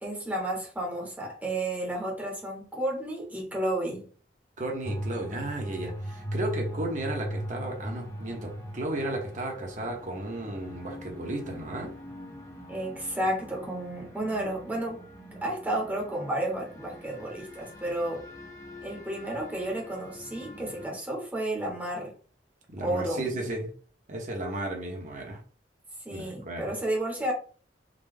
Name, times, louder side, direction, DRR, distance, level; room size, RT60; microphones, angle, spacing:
voice 1, 0.0-4.1 12.7-15.0 15.4-18.2 18.8-22.1 22.8-23.4 26.0-27.3, right 1 dB, 10° right, 1.0 m, -32 dB
voice 2, 4.6-11.9 22.7-23.7 24.1-25.4 26.1-26.7, right 1 dB, 45° right, 1.1 m, -34 dB
sound 1, 4.8-20.9, equal, 20° left, 0.7 m, -41 dB
3.9 x 2.2 x 3.5 m
head